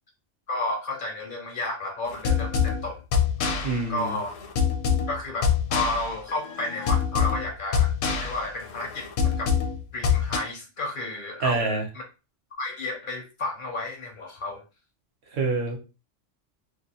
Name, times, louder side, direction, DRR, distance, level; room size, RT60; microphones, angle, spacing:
voice 1, 0.5-3.0 3.9-4.3 5.1-7.9 8.2-9.5 9.9-12.0 12.6-14.6, left 2 dB, 60° left, 2 dB, 0.5 m, -32 dB
sound 1, 2.1-10.4, left 7 dB, 85° left, 0.9 m, -25 dB
voice 2, 3.6-4.2 11.4-11.8 15.3-15.8, right 3 dB, 60° right, 3 dB, 0.8 m, -26 dB
2.3 x 2.2 x 2.7 m, 0.31 s
omnidirectional pair, 1.3 m